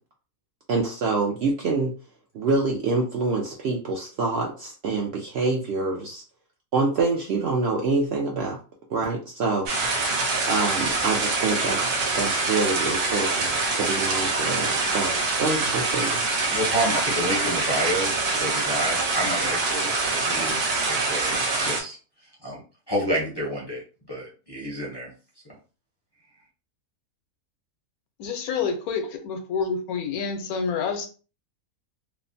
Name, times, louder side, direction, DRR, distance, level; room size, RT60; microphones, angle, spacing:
voice 1, 0.7-1.9 2.3-6.2 6.7-8.6 8.9-9.7 10.5-16.2, right 3 dB, 70° right, 0.6 m, -26 dB
sound 1, 9.7-21.8, right 3 dB, 90° right, 1.3 m, -25 dB
voice 2, 16.5-22.0 22.4-22.6 22.9-23.8 24.1-25.1, right 1 dB, 30° left, 0.5 m, -29 dB
voice 3, 28.2-31.1, left 5 dB, 75° left, 1.1 m, -28 dB
3.1 x 2.1 x 2.5 m
omnidirectional pair, 1.6 m